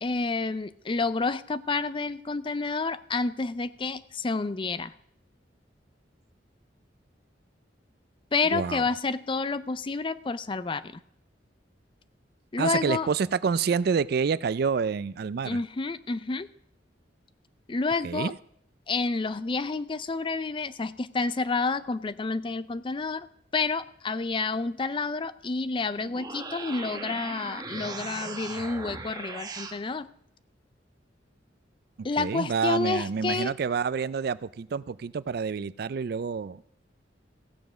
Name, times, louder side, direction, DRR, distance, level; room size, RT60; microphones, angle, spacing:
voice 1, 0.0-4.9 8.3-11.0 12.5-13.1 15.4-16.5 17.7-18.3 18.9-23.3 23.5-30.1 32.0-33.5, left 3 dB, 25° left, 15 dB, 0.4 m, -29 dB
voice 2, 8.5-8.9 12.6-15.6 18.0-18.4 32.0-36.6, right 5 dB, 55° right, 17 dB, 0.4 m, -28 dB
sound 1, 26.0-29.8, right 3 dB, 20° right, 1.0 m, -38 dB
15.5 x 7.0 x 6.2 m, 0.73 s
head